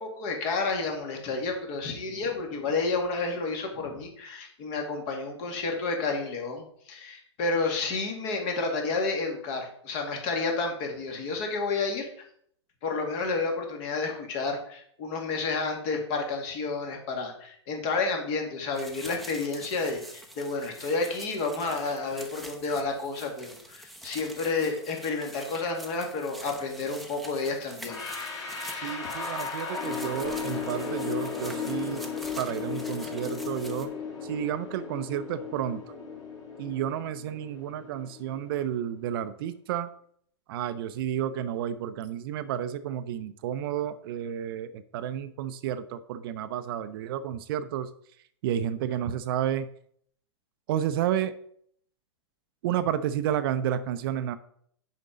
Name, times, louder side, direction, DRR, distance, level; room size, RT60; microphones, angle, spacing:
voice 1, 0.0-12.1 12.8-28.0, left 3 dB, 40° left, 3 dB, 2.1 m, -30 dB
sound 1, 18.7-33.9, right 1 dB, ahead, 0.8 m, -46 dB
sound 2, 27.9-38.7, left 5 dB, 20° left, 3.2 m, -35 dB
voice 2, 28.8-32.0 32.4-33.9 34.2-35.9 36.6-39.9 40.5-47.9 48.4-49.7 50.7-51.3 52.6-54.4, right 10 dB, 50° right, 12 dB, 0.6 m, -31 dB
6.7 x 5.2 x 5.1 m, 0.64 s
hypercardioid pair, 120°, 15 cm